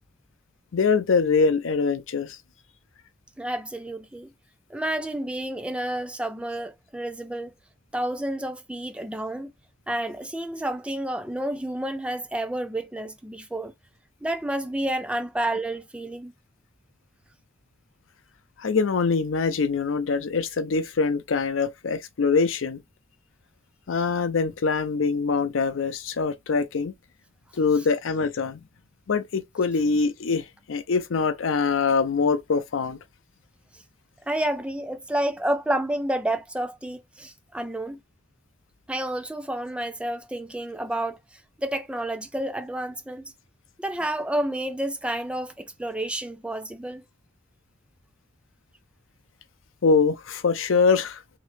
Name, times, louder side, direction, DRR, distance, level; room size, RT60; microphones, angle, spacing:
voice 1, 0.7-2.4 18.6-22.8 23.9-26.9 27.5-28.6 29.1-33.0 49.8-51.2, left 4 dB, 90° left, 0.5 m, -24 dB
voice 2, 3.4-4.3 4.7-7.5 7.9-9.5 9.9-13.7 14.2-16.3 33.7-33.8 34.3-38.0 38.9-43.3 43.8-47.0, right 1 dB, 5° right, 0.3 m, -30 dB
3.0 x 2.9 x 3.2 m
head